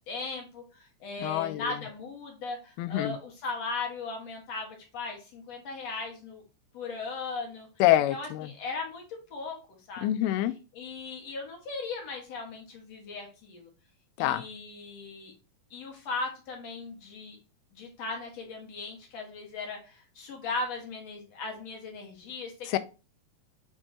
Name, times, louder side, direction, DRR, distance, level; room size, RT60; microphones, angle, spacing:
voice 1, 0.1-6.4 6.7-7.7 8.1-9.0 9.3-10.0 10.7-13.7 14.2-15.3 15.7-17.4 17.7-22.8, left 3 dB, 50° left, 2.4 m, -38 dB
voice 2, 1.2-1.8 2.8-3.2 7.8-8.5 10.0-10.5 14.2-14.5 22.7-22.8, left 14 dB, 90° left, 2.5 m, -26 dB
8.7 x 4.4 x 2.9 m
omnidirectional pair, 4.3 m